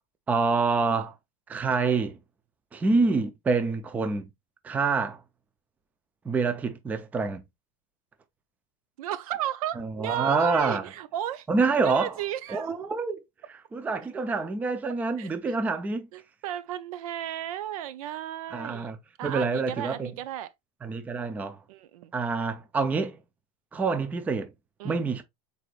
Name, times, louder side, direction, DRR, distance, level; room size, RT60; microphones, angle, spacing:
voice 1, 0.3-1.1 1.5-2.2 2.7-4.3 4.6-5.2 6.3-7.4 9.8-10.8 11.5-12.1 12.5-13.2 13.7-16.1 18.5-19.0 19.2-20.1 20.8-21.6 22.1-23.2 23.7-24.5 24.8-25.2, right 4 dB, 10° right, 0.4 m, -26 dB
voice 2, 9.0-11.5 11.8-12.7 15.2-15.6 16.1-18.9 19.2-20.5 21.7-22.1 24.8-25.0, right 12 dB, 70° right, 0.6 m, -34 dB
4.7 x 4.0 x 2.4 m
supercardioid pair, 145°, 19 cm